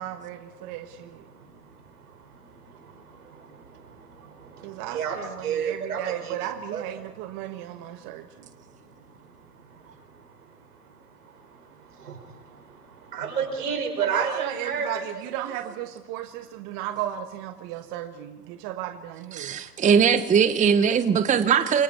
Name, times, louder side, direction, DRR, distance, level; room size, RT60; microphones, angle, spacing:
voice 1, 0.0-1.2 4.6-8.3 14.0-19.6, right 12 dB, 40° right, 7 dB, 1.5 m, -35 dB
voice 2, 1.1-1.7 2.0-6.4 6.7-6.8 9.7-9.9 11.5-14.9 15.4-15.7, right 6 dB, 75° right, 3 dB, 5.9 m, -33 dB
voice 3, 19.3-21.8, right 7 dB, 15° right, 11 dB, 1.0 m, -20 dB
29.5 x 24.0 x 4.6 m, 1.0 s
figure-of-eight pair, 95°, 46 cm